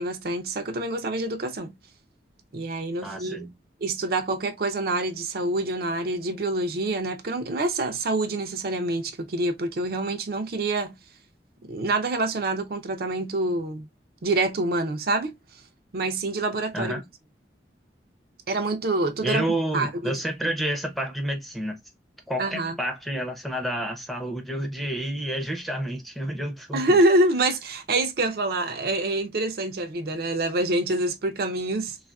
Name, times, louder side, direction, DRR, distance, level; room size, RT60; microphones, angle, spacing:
voice 1, 0.0-1.7 2.5-3.5 3.8-11.0 11.7-13.9 14.2-15.4 15.9-17.0 18.5-19.4 19.7-20.1 22.4-22.8 26.7-32.0, right 2 dB, 55° right, 0.5 m, -26 dB
voice 2, 3.0-3.5 16.7-17.0 19.2-21.8 22.3-27.0, right 1 dB, ahead, 0.5 m, -29 dB
3.3 x 2.4 x 2.2 m
head